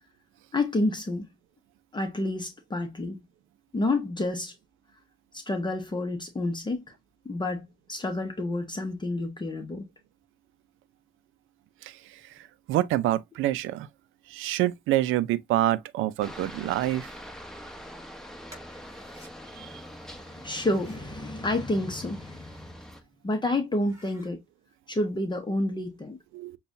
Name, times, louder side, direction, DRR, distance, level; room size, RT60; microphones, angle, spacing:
voice 1, 0.5-1.3 1.9-3.2 3.7-4.5 5.3-6.8 7.2-9.8 20.1-22.5 23.2-24.4 24.9-26.2, left 2 dB, 25° left, 0.9 m, -29 dB
voice 2, 12.7-13.9 14.3-17.1 19.6-19.7 26.3-26.6, right 14 dB, 85° right, 0.5 m, -26 dB
Aircraft, 16.2-23.0, equal, 5° left, 1.0 m, -44 dB
sound 1, 18.5-19.3 20.4-21.1 22.0-22.8 23.2-23.3 23.7-24.3, equal, 15° right, 3.3 m, -55 dB
6.8 x 2.3 x 2.6 m
cardioid pair, 90°, 20 cm